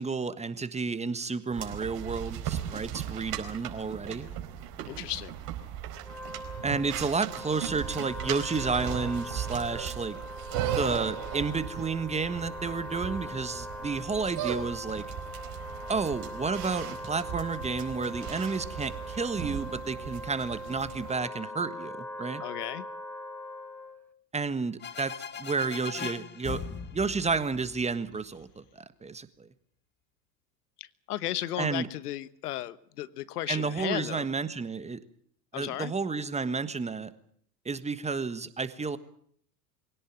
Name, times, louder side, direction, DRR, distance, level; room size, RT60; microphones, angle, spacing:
voice 1, 0.0-4.3 6.6-10.2 10.8-15.1 15.9-22.4 24.3-26.6 26.9-29.5 31.6-31.9 33.5-35.0 35.5-37.1 37.6-39.0, right 4 dB, 15° right, 13 dB, 1.5 m, -31 dB
sound 1, 1.5-21.1, right 10 dB, 50° right, 4.7 m, -37 dB
voice 2, 4.9-5.3 22.4-22.9 30.8-34.3 35.5-35.9, left 14 dB, 70° left, 17 dB, 1.2 m, -35 dB
Wind instrument woodwind instrument, 5.9-24.1, left 1 dB, 5° left, 2.0 m, -41 dB
sound 2, 24.8-28.4, left 7 dB, 20° left, 1.5 m, -40 dB
24.0 x 17.5 x 8.7 m, 0.64 s
hypercardioid pair, 90°, 48 cm